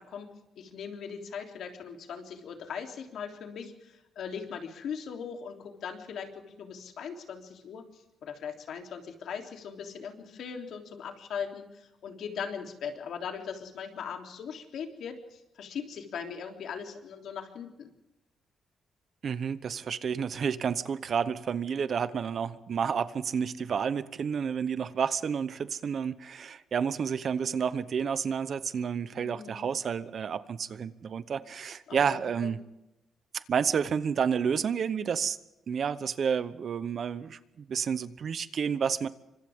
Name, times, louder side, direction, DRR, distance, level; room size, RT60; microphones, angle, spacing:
voice 1, 0.0-17.9 29.1-29.7 31.9-32.5, left 7 dB, 65° left, 3 dB, 3.4 m, -40 dB
voice 2, 19.2-32.6 33.3-35.4 35.7-39.1, right 7 dB, 45° right, 14 dB, 0.9 m, -30 dB
28.5 x 25.0 x 3.7 m, 0.94 s
cardioid pair, 140°, 0 cm